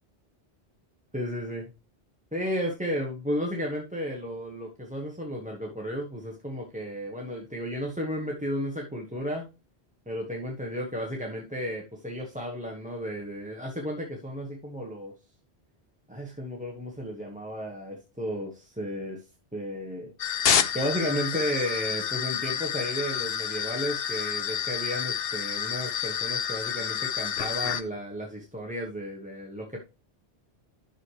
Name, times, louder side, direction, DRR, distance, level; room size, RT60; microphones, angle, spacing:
voice 1, 1.1-1.7 2.3-9.5 10.1-15.1 16.1-19.2 19.5-20.1 20.7-29.8, equal, 5° right, 0 dB, 1.1 m, -33 dB
sound 1, 20.2-27.8, left 8 dB, 65° left, 0.9 m, -29 dB
10.5 x 6.4 x 3.2 m, 0.29 s
omnidirectional pair, 1.1 m